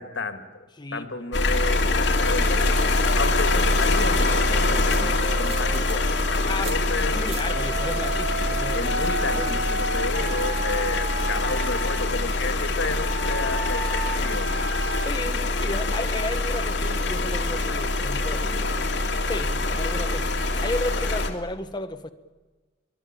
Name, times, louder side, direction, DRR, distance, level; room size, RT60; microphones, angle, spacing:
voice 1, 0.0-0.7 0.9-7.2 8.7-14.6, left 3 dB, 90° left, 2.0 m, -32 dB
voice 2, 0.8-1.5 6.5-9.6 15.0-18.5 19.2-22.1, left 2 dB, 25° left, 1.1 m, -33 dB
sound 1, 1.3-21.3, left 2 dB, 70° left, 2.3 m, -24 dB
Wind instrument woodwind instrument, 1.7-6.8 7.4-12.1 12.9-15.1, right 2 dB, 80° right, 1.8 m, -34 dB
sound 2, 3.0-3.1 3.7-4.3 4.9-5.0 5.4-6.0 6.6-6.8 7.3-7.5, right 6 dB, 35° right, 1.6 m, -40 dB
23.0 x 22.5 x 8.9 m
head